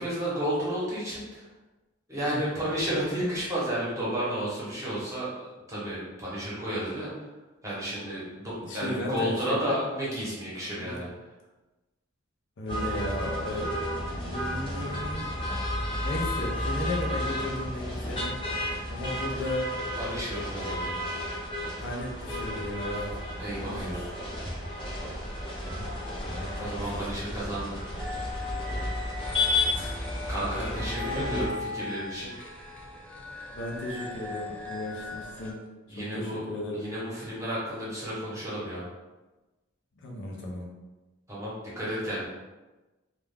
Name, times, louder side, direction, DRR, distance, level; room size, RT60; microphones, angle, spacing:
voice 1, 0.0-1.5 2.1-7.1 7.6-11.1 20.0-21.0 23.4-24.1 26.6-27.8 30.3-32.3 35.9-36.4 36.7-38.8 41.3-42.3, equal, 15° right, -8 dB, 0.9 m, -32 dB
voice 2, 8.6-9.6 10.8-11.0 12.6-13.7 14.1-15.2 16.0-18.4 18.6-19.7 21.8-23.2 23.6-24.1 25.8-25.9 26.2-27.1 29.7-30.0 31.0-31.5 33.5-35.6 36.0-36.9 40.0-40.7, left 1 dB, 60° left, -2 dB, 0.5 m, -35 dB
sound 1, 12.7-31.5, left 1 dB, 25° left, 0.7 m, -32 dB
sound 2, 28.0-35.5, left 3 dB, 5° left, 0.3 m, -39 dB
2.4 x 2.2 x 3.3 m, 1.1 s
head